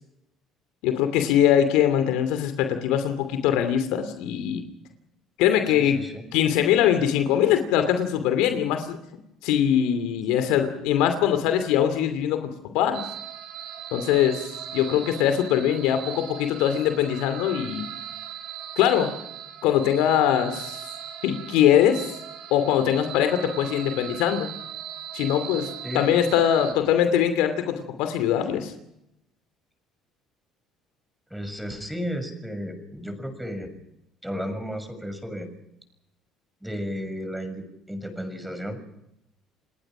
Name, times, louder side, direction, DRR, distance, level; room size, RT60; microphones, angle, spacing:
voice 1, 0.8-4.6 5.4-6.0 6.3-9.0 9.4-13.0 13.9-17.9 18.8-19.1 19.6-20.9 21.2-22.2 22.5-24.5 25.1-28.7, left 10 dB, 80° left, 9 dB, 2.7 m, -22 dB
voice 2, 5.7-6.2 25.8-26.0 31.3-33.7 34.2-35.5 36.6-38.8, equal, 5° right, 8 dB, 6.7 m, -33 dB
sound 1, 12.9-26.7, right 9 dB, 75° right, 4.5 m, -39 dB
29.5 x 18.5 x 6.2 m, 0.81 s
supercardioid pair, 70°, 0 cm